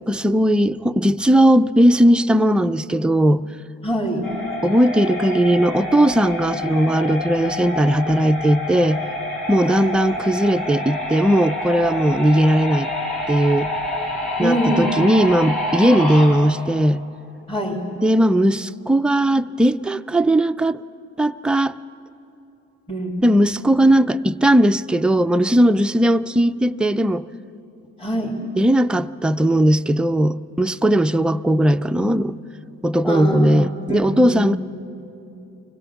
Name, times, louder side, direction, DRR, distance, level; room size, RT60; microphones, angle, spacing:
voice 1, 0.1-3.4 4.6-9.0 9.5-12.9 13.3-13.7 14.4-17.0 18.0-20.8 21.2-21.7 23.2-27.2 28.6-32.4 32.8-34.6, right 1 dB, 5° right, 8 dB, 0.4 m, -18 dB
voice 2, 3.8-4.2 9.6-9.8 14.4-14.9 17.5-17.8 22.9-23.3 28.0-28.3 30.9-31.1 33.0-34.4, right 1 dB, 20° left, -5 dB, 2.8 m, -25 dB
sound 1, 4.2-16.3, left 1 dB, 85° left, 6.3 m, -27 dB
25.0 x 16.5 x 7.1 m, 2.9 s
cardioid pair, 90°, 30 cm